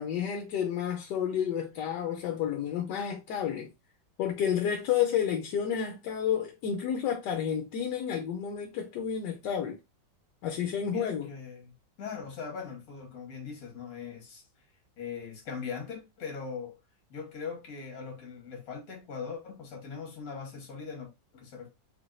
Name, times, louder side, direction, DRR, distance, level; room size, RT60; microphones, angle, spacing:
voice 1, 0.0-3.7 4.2-9.8 10.4-11.3, left 8 dB, 75° left, 1.2 m, -30 dB
voice 2, 10.9-11.7 12.0-14.4 15.0-16.8 17.1-21.7, left 6 dB, 55° left, 1.8 m, -40 dB
3.9 x 3.5 x 2.4 m
omnidirectional pair, 1.9 m